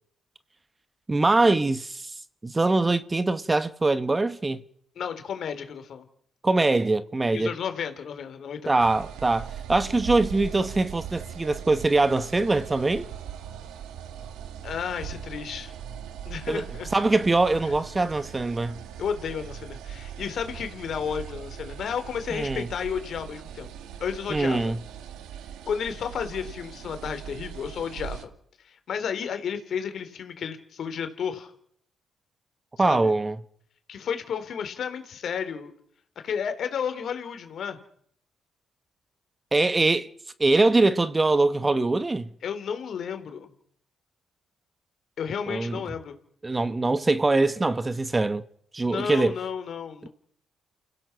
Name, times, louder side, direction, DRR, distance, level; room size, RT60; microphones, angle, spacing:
voice 1, 1.1-2.1 2.4-4.6 6.4-7.5 8.7-13.0 16.5-16.6 16.9-18.8 22.3-22.7 24.3-24.8 32.8-33.4 39.5-40.1 40.4-42.3 45.5-45.8 46.4-48.4 48.7-49.4 50.0-50.1, right 2 dB, 20° right, 1.1 m, -23 dB
voice 2, 4.9-6.0 7.3-8.7 14.6-15.7 16.2-16.9 19.0-23.7 24.0-24.7 25.7-28.3 28.6-31.5 32.8-33.1 33.9-35.7 36.2-37.8 42.4-43.5 45.2-46.1 48.8-50.1, left 7 dB, 60° left, 3.4 m, -32 dB
sound 1, 8.8-28.3, right 9 dB, 90° right, 1.9 m, -40 dB
29.5 x 16.0 x 5.9 m
cardioid pair, 90°, 0 cm